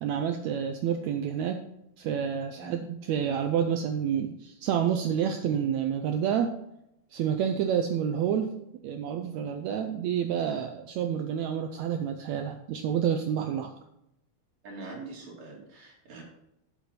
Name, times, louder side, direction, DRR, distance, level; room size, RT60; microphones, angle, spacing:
voice 1, 0.0-1.6 2.0-6.5 7.1-8.5 8.8-13.7, right 8 dB, 80° right, 6 dB, 1.7 m, -29 dB
voice 2, 14.6-16.2, right 3 dB, 60° right, -2 dB, 3.7 m, -43 dB
10.5 x 7.1 x 4.4 m, 0.82 s
omnidirectional pair, 3.7 m